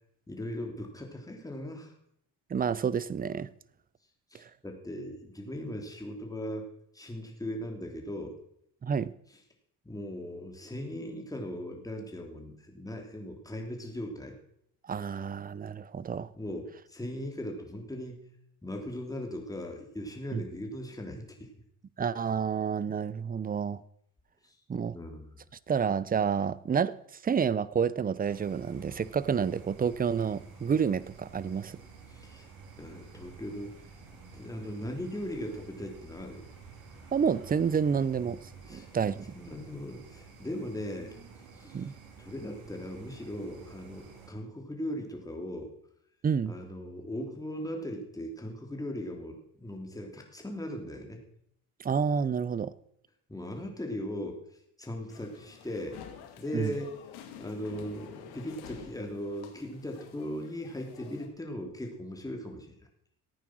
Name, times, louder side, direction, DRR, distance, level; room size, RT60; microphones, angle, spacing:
voice 1, 0.3-1.9 4.3-6.7 6.9-8.4 9.8-14.4 16.3-18.3 18.6-21.5 24.4-24.5 24.9-25.3 32.1-32.5 32.8-33.8 34.3-36.5 38.7-41.2 41.6-41.9 42.2-45.7 46.5-51.2 53.3-54.4 54.8-56.0 56.4-56.9 57.4-62.9, equal, 10° left, 3.2 m, -38 dB
voice 2, 2.5-3.5 4.3-4.5 8.8-9.1 14.9-16.3 20.3-20.4 22.0-23.8 24.7-25.0 25.7-27.0 27.2-31.8 37.1-38.4 38.7-39.3 41.7-41.9 46.2-46.5 51.8-52.7 56.5-56.7, right 6 dB, 25° right, 0.6 m, -29 dB
sound 1, 28.2-44.3, right 4 dB, 80° right, 3.5 m, -51 dB
sound 2, 55.1-61.3, left 8 dB, 85° left, 2.3 m, -49 dB
14.5 x 9.1 x 6.3 m
cardioid pair, 90°, 37 cm